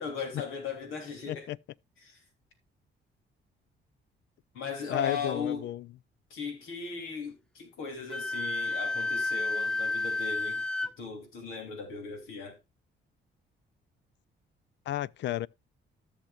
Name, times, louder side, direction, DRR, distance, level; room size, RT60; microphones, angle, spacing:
voice 1, 0.0-1.5 2.0-2.2 4.5-5.7 6.3-12.6, left 5 dB, 90° left, 3.3 m, -38 dB
voice 2, 1.3-1.6 4.9-5.9 14.9-15.5, left 13 dB, 65° left, 0.4 m, -32 dB
Wind instrument woodwind instrument, 8.1-10.9, left 3 dB, 5° left, 0.5 m, -31 dB
15.0 x 6.6 x 2.4 m
cardioid pair, 90°, 20 cm